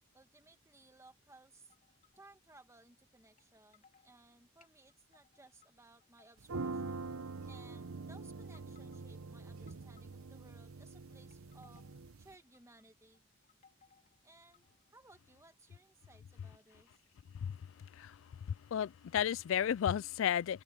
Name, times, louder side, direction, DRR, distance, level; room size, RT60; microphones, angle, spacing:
voice 1, 0.1-1.7 2.2-7.1 7.5-11.8 12.2-13.2 14.2-16.9, right 2 dB, 15° right, 2.1 m, -61 dB
sound 1, 1.7-2.5 3.4-3.5 3.7-4.1 4.6-5.7 6.0-6.7 7.4-7.9 8.4-9.1 9.7-10.5 11.1-12.0 12.5-12.8 13.1-15.0, left 7 dB, 35° left, 3.3 m, -69 dB
sound 2, 6.4-12.3, right 3 dB, 80° right, 0.8 m, -44 dB
voice 2, 18.7-20.6, left 9 dB, 60° left, 0.3 m, -33 dB
open air
head